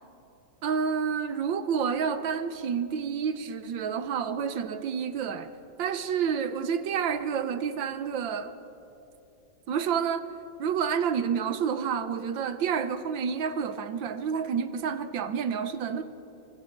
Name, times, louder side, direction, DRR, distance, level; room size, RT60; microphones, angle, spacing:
voice 1, 0.6-5.5 5.8-8.6 9.7-10.3 10.6-16.0, right 7 dB, 75° right, 11 dB, 1.6 m, -29 dB
26.0 x 24.5 x 4.6 m, 2.9 s
omnidirectional pair, 2.2 m